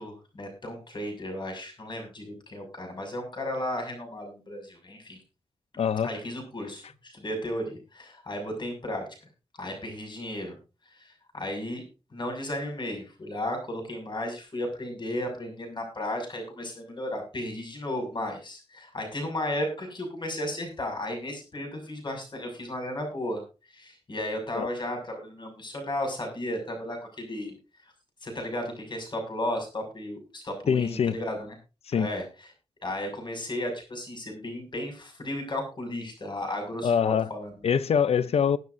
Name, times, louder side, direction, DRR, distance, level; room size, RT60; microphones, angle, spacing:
voice 1, 0.0-5.2 6.0-9.0 9.6-10.6 10.9-11.8 12.1-23.4 23.7-27.6 28.2-31.5 31.9-32.5 32.8-37.7, left 1 dB, 45° left, 6.4 m, -34 dB
voice 2, 5.8-6.1 24.6-24.7 30.7-31.2 31.9-32.1 36.8-37.3 37.6-38.6, left 7 dB, 70° left, 0.7 m, -24 dB
21.0 x 9.4 x 2.7 m
cardioid pair, 85°, 11 cm